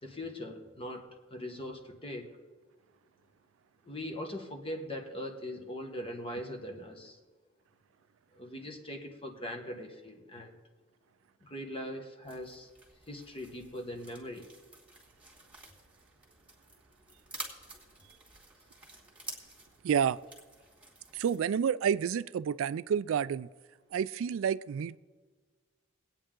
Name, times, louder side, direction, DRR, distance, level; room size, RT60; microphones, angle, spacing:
voice 1, 0.0-1.0 1.3-2.3 3.8-7.2 8.3-10.6 11.4-12.7 13.1-14.5, left 1 dB, 30° left, 1.2 m, -41 dB
sound 1, 12.2-21.4, right 2 dB, 5° right, 2.0 m, -50 dB
voice 2, 19.8-20.2 21.1-23.5 23.9-25.0, right 7 dB, 75° right, 0.3 m, -29 dB
21.5 x 8.8 x 3.8 m
head